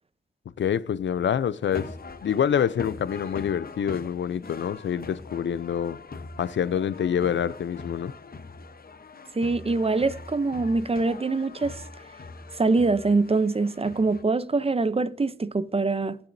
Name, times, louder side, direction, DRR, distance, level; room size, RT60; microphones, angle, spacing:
voice 1, 0.6-1.9 2.2-6.0 6.4-8.1, left 8 dB, 80° left, 0.5 m, -26 dB
sound 1, 1.6-14.2, left 3 dB, 55° left, 0.9 m, -42 dB
voice 2, 9.3-11.8 12.6-16.2, right 3 dB, 30° right, 0.6 m, -24 dB
18.5 x 7.0 x 2.6 m
cardioid pair, 45°, 19 cm